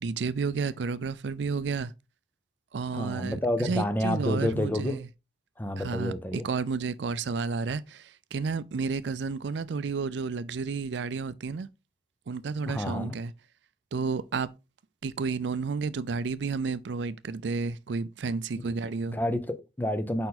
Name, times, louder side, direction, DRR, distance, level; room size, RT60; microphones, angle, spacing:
voice 1, 0.0-1.9 2.7-5.1 5.8-11.7 12.3-13.3 13.9-14.5 15.0-19.2, right 4 dB, 80° right, 0.4 m, -31 dB
voice 2, 2.9-5.0 5.6-6.5 12.7-13.2 19.1-20.3, left 1 dB, 10° left, 0.6 m, -29 dB
5.3 x 4.5 x 4.1 m
head